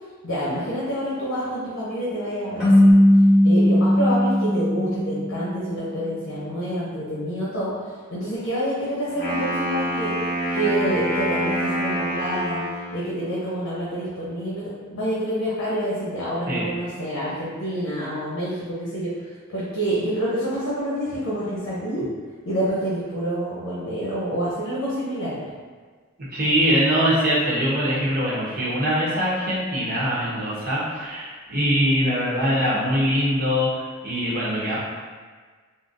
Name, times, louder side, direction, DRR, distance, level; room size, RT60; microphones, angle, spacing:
voice 1, 0.2-2.9 3.4-7.7 8.1-10.3 10.5-12.6 12.9-19.1 19.5-22.0 22.4-25.3, right 1 dB, 90° left, -8 dB, 0.8 m, -27 dB
sound 1, 2.6-5.8, left 1 dB, ahead, 1.0 m, -17 dB
Wind instrument woodwind instrument, 9.1-13.1, right 1 dB, 45° left, 0.8 m, -26 dB
voice 2, 26.3-33.7 34.0-34.8, equal, 45° right, -7 dB, 0.8 m, -22 dB
3.8 x 2.0 x 2.5 m, 1.5 s
head